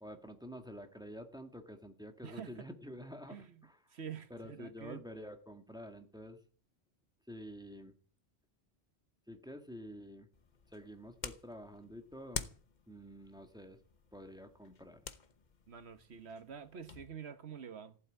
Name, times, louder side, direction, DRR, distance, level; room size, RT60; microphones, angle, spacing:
voice 1, 0.0-3.4 3.6-3.8 4.3-6.4 7.3-8.0 9.3-10.3 10.7-12.5 12.9-13.8 14.1-15.0, equal, 5° right, 1.7 m, -49 dB
voice 2, 2.2-2.7 3.3-5.0 15.7-18.0, right 7 dB, 85° right, 1.5 m, -47 dB
sound 1, 10.3-17.1, left 5 dB, 45° left, 1.1 m, -49 dB
15.0 x 8.1 x 9.2 m
omnidirectional pair, 1.1 m